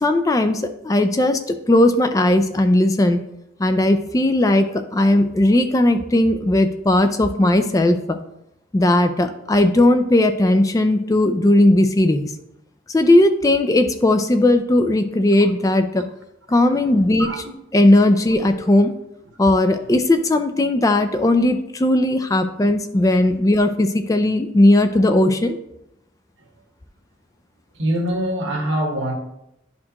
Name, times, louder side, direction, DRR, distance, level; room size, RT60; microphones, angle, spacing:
voice 1, 0.0-1.4 1.7-3.2 3.6-8.2 8.7-12.3 12.9-16.0 16.5-17.3 17.7-18.9 19.4-25.6, left 1 dB, 15° left, 0.3 m, -17 dB
voice 2, 16.7-17.5 26.4-26.5 27.7-29.1, right 1 dB, 80° right, 1.3 m, -25 dB
11.0 x 4.3 x 2.9 m
head